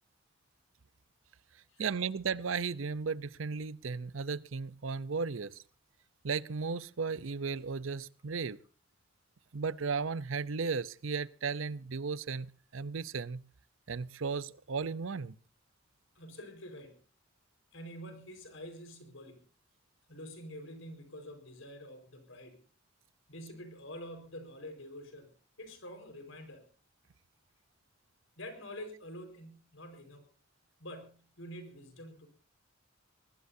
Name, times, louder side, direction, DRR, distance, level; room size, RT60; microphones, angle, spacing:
voice 1, 1.8-5.6 6.2-8.6 9.5-13.4 13.9-15.3, right 5 dB, 90° right, 0.7 m, -35 dB
voice 2, 16.1-17.0 17.7-19.4 20.1-22.6 23.3-25.3 25.6-26.6 28.4-30.3 30.8-32.3, equal, 85° left, 4.8 m, -47 dB
24.0 x 19.5 x 2.7 m
head